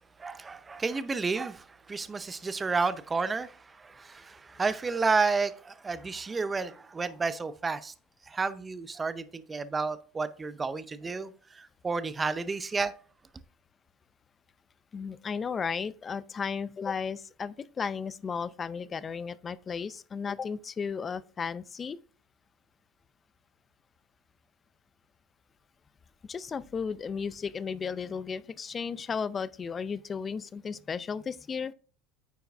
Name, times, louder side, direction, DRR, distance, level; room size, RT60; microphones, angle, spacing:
voice 1, 0.2-7.9 8.3-12.9, right 4 dB, 20° right, 0.6 m, -31 dB
voice 2, 14.9-22.0 26.3-31.7, left 6 dB, 30° left, 0.5 m, -34 dB
9.2 x 4.6 x 3.4 m
supercardioid pair, 100°, 0 cm